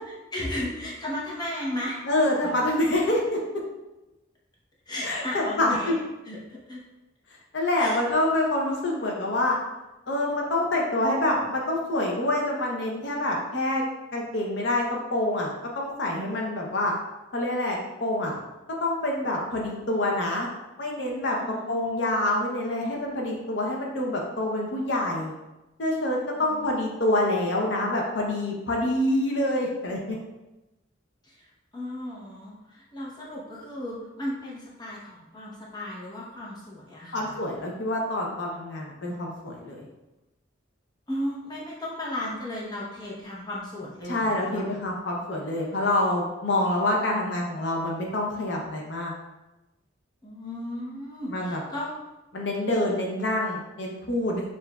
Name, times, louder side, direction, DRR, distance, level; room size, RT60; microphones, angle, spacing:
voice 1, 0.3-2.0 2.4-2.6 4.9-6.8 7.7-8.0 21.3-21.8 26.3-26.8 31.2-31.5 31.7-37.4 41.1-44.6 50.2-51.9, left 1 dB, 20° left, -5 dB, 0.8 m, -35 dB
voice 2, 2.1-3.4 5.0-6.0 7.5-9.6 10.1-13.8 14.1-16.9 17.3-18.4 18.7-20.5 20.8-25.3 25.8-30.2 37.1-39.8 44.1-49.1 51.3-51.6 52.3-54.4, left 1 dB, 60° left, -1 dB, 0.6 m, -26 dB
6.7 x 2.5 x 2.3 m, 1.0 s
head